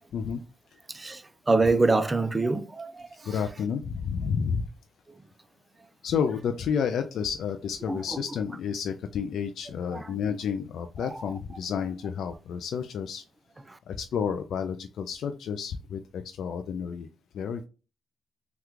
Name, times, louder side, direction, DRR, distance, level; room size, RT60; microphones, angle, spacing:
voice 1, 0.9-3.3 7.9-8.0 9.9-10.1 11.0-11.2 13.7-13.8, right 3 dB, 25° right, 0.4 m, -26 dB
voice 2, 3.2-4.7 6.0-13.2 13.9-17.1 17.3-17.7, left 7 dB, 75° left, 0.3 m, -30 dB
3.0 x 2.3 x 3.4 m
supercardioid pair, 55°, 0 cm